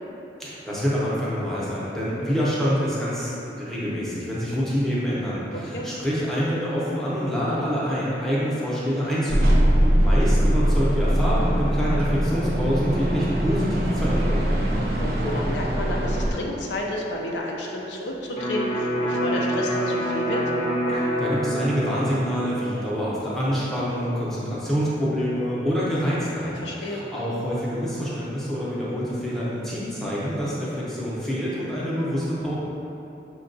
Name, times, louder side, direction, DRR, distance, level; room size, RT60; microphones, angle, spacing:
voice 1, 0.4-9.7 10.0-14.7 20.9-32.5, equal, ahead, -9 dB, 0.6 m, -26 dB
voice 2, 5.5-5.9 15.0-20.4 26.6-27.0, left 1 dB, 90° left, -1 dB, 0.5 m, -31 dB
sound 1, 9.3-16.3, equal, 60° right, 0.5 m, -22 dB
Electric guitar, 18.4-26.0, equal, 40° left, 0.7 m, -28 dB
6.3 x 2.2 x 2.6 m, 2.9 s
head